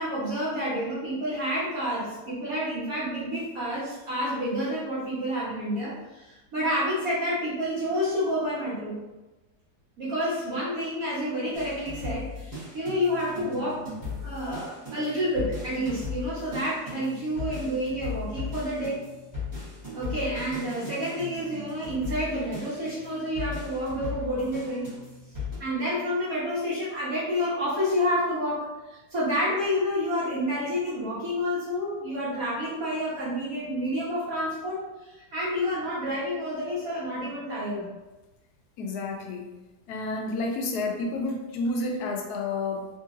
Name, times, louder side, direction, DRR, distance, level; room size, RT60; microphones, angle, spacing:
voice 1, 0.0-9.0 10.0-13.8 14.2-19.0 19.9-24.9 25.6-37.9, equal, 60° right, -8 dB, 1.6 m, -29 dB
sound 1, 11.5-25.6, left 4 dB, 15° right, 1.1 m, -38 dB
voice 2, 38.8-39.5 39.9-42.9, left 2 dB, 75° left, 2 dB, 1.1 m, -30 dB
3.7 x 2.9 x 2.5 m, 1.1 s
omnidirectional pair, 1.8 m